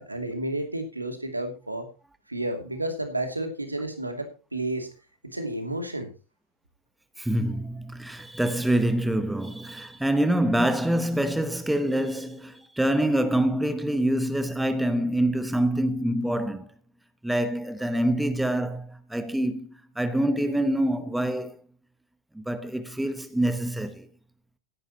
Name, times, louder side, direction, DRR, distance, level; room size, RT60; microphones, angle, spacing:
voice 1, 0.0-1.9 2.3-4.9 5.3-6.1, right 1 dB, 85° right, 2.7 m, -31 dB
voice 2, 7.2-16.7 17.2-21.6 22.3-24.1, right 1 dB, 5° right, 1.1 m, -26 dB
16.5 x 11.0 x 3.0 m
figure-of-eight pair, 90°, 0 cm